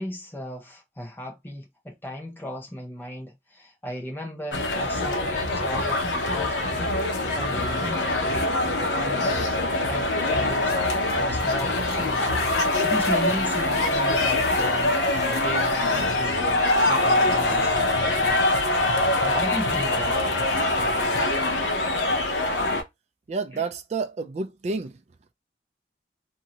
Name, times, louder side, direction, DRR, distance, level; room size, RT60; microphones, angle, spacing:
voice 1, 0.0-9.6 9.9-14.9 15.3-18.5 19.0-20.2 23.5-23.6, left 1 dB, 10° left, 0.7 m, -36 dB
sound 1, 4.5-22.8, left 2 dB, 80° left, 0.8 m, -24 dB
sound 2, 10.6-16.2, left 3 dB, 60° left, 1.1 m, -42 dB
voice 2, 23.3-25.0, right 4 dB, 35° right, 0.3 m, -29 dB
2.7 x 2.7 x 2.8 m
head